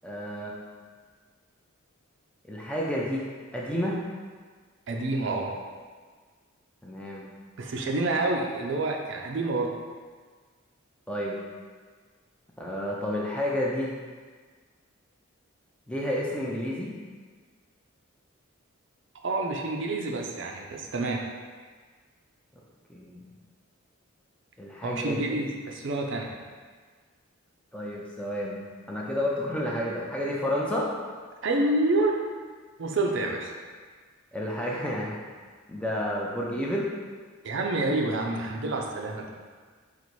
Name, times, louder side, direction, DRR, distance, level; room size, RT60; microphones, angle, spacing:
voice 1, 0.0-0.6 2.5-3.2 3.5-4.0 6.8-7.2 11.1-11.4 12.6-13.9 15.9-16.9 22.9-23.2 24.6-25.4 27.7-28.6 28.9-30.9 34.3-35.2 35.7-36.9, left 1 dB, 5° left, -4 dB, 0.4 m, -30 dB
voice 2, 4.9-5.6 7.6-9.7 19.2-21.2 24.8-26.3 31.4-32.2 32.8-33.5 37.4-39.3, right 2 dB, 55° right, 1 dB, 0.5 m, -28 dB
4.1 x 2.5 x 4.6 m, 1.5 s
head